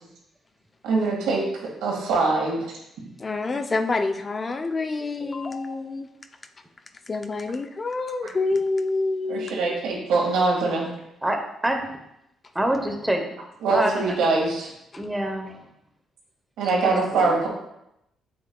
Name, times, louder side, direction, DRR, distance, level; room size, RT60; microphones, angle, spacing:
voice 1, 0.8-2.7 9.3-10.9 13.6-14.7 16.6-17.5, right 3 dB, 90° right, -1 dB, 2.1 m, -23 dB
voice 2, 3.2-6.1 7.1-9.8 14.9-15.0, left 3 dB, 30° left, 7 dB, 0.5 m, -27 dB
voice 3, 11.2-12.0 12.5-13.2 13.7-14.3 15.0-15.6 16.8-17.5, right 1 dB, 10° right, 4 dB, 1.0 m, -26 dB
7.8 x 6.7 x 2.3 m, 0.83 s
cardioid pair, 90°, 0 cm